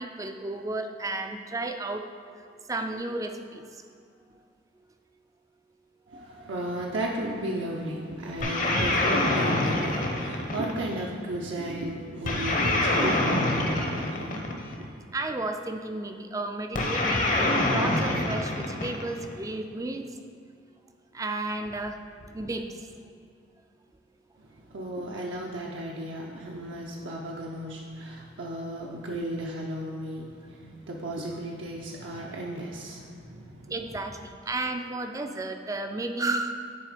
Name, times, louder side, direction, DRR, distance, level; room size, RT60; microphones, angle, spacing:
voice 1, 0.0-2.1 2.7-3.8 15.1-20.2 21.1-22.0 22.3-22.9 33.7-36.5, right 2 dB, 15° right, 6 dB, 0.4 m, -33 dB
voice 2, 6.1-15.1 24.4-33.9, right 1 dB, 75° right, -2 dB, 0.7 m, -35 dB
sound 1, 8.4-11.0 12.3-14.8 16.8-19.3, left 1 dB, 45° left, 0.8 m, -26 dB
9.9 x 3.6 x 5.1 m, 2.4 s
head